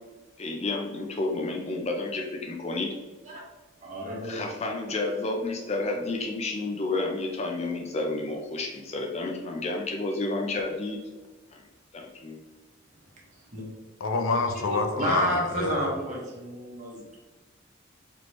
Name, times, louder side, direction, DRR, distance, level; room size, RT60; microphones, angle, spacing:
voice 1, 0.4-2.9 4.2-11.0 11.5-11.6 11.9-12.4, left 2 dB, 30° left, 2 dB, 0.4 m, -30 dB
voice 2, 3.8-4.5 13.3-13.8 14.5-17.2, right 1 dB, 35° right, -4 dB, 1.1 m, -31 dB
voice 3, 14.0-15.9, left 4 dB, 85° left, 5 dB, 0.5 m, -27 dB
4.2 x 3.0 x 3.0 m, 1.2 s
head